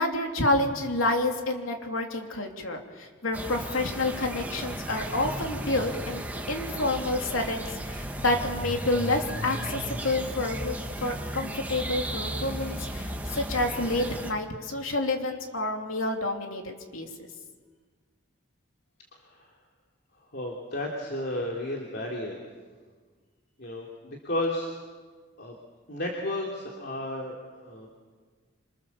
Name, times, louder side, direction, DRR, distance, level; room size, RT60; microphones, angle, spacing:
voice 1, 0.0-17.3, left 2 dB, 80° left, 3 dB, 3.2 m, -29 dB
sound 1, 3.3-14.3, right 1 dB, 10° right, 1.6 m, -35 dB
voice 2, 19.1-19.5 20.3-22.4 23.6-24.7 25.4-25.5 25.9-28.0, left 1 dB, 50° left, -1 dB, 3.1 m, -33 dB
27.5 x 25.5 x 7.2 m, 1.5 s
head